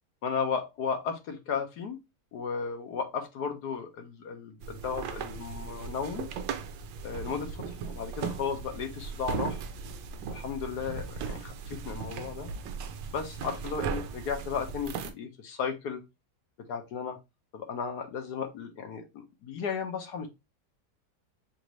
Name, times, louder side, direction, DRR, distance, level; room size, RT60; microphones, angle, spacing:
voice 1, 0.2-2.0 2.3-6.3 7.0-9.6 10.3-12.5 13.1-16.0 16.7-17.2 17.5-20.3, left 6 dB, 70° left, 5 dB, 1.3 m, -34 dB
sound 1, 4.6-15.1, right 5 dB, 90° right, 1.3 m, -37 dB
6.2 x 2.6 x 3.0 m, 0.23 s
omnidirectional pair, 1.9 m